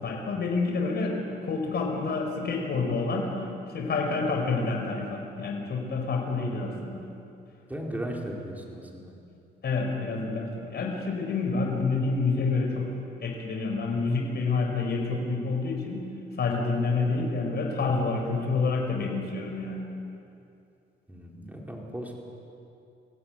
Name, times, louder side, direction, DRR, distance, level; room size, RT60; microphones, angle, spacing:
voice 1, 0.0-7.0 9.6-12.9 13.2-16.0 16.3-19.8, left 3 dB, 55° left, 1 dB, 5.0 m, -28 dB
voice 2, 7.7-9.1 21.1-22.2, right 1 dB, 10° right, -1 dB, 4.9 m, -36 dB
24.5 x 16.0 x 9.2 m, 2.6 s
cardioid pair, 90°, 20 cm